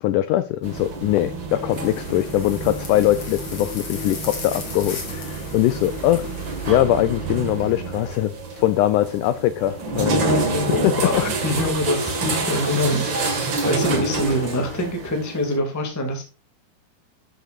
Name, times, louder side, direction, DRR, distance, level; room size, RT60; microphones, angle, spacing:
voice 1, 0.0-6.3 6.7-10.2 10.7-11.2, left 14 dB, 90° left, 1.8 m, -22 dB
sound 1, 0.6-15.6, right 3 dB, 40° right, 1.8 m, -28 dB
sound 2, 1.7-6.7, left 4 dB, 35° left, 3.1 m, -37 dB
voice 2, 10.1-16.2, left 1 dB, 10° left, 0.8 m, -25 dB
13.0 x 6.6 x 2.5 m
omnidirectional pair, 4.3 m